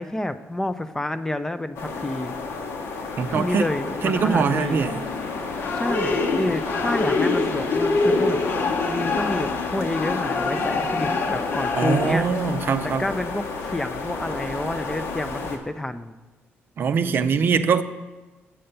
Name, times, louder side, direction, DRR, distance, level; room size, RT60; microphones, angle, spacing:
voice 1, 0.0-2.3 3.3-4.8 5.7-8.4 8.8-12.3 12.8-16.2 17.0-17.5, left 1 dB, 10° left, 11 dB, 0.4 m, -29 dB
sound 1, 1.8-15.6, left 4 dB, 80° left, 1.2 m, -31 dB
voice 2, 3.2-3.7 4.0-5.0 11.7-13.0 16.8-17.8, right 6 dB, 50° right, 9 dB, 0.5 m, -22 dB
sound 2, 4.8-12.1, left 3 dB, 55° left, 0.9 m, -25 dB
7.7 x 5.6 x 6.6 m, 1.2 s
cardioid pair, 115°, 4 cm